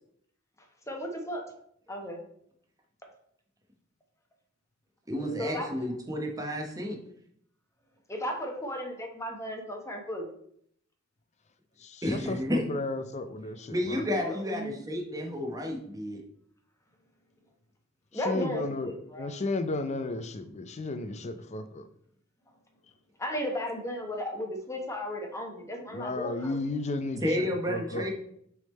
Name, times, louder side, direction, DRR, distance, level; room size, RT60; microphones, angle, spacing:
voice 1, 0.9-1.4 1.9-2.2 5.4-5.7 8.1-10.3 14.2-14.8 18.1-19.3 23.2-26.6, equal, 15° left, 2 dB, 1.0 m, -35 dB
voice 2, 5.1-7.0 12.0-12.6 13.7-16.2 27.2-28.1, left 1 dB, 15° right, 1 dB, 0.9 m, -31 dB
voice 3, 12.1-14.0 18.1-21.8 25.9-28.1, left 2 dB, 30° left, 9 dB, 0.4 m, -33 dB
6.2 x 3.6 x 4.2 m, 0.69 s
head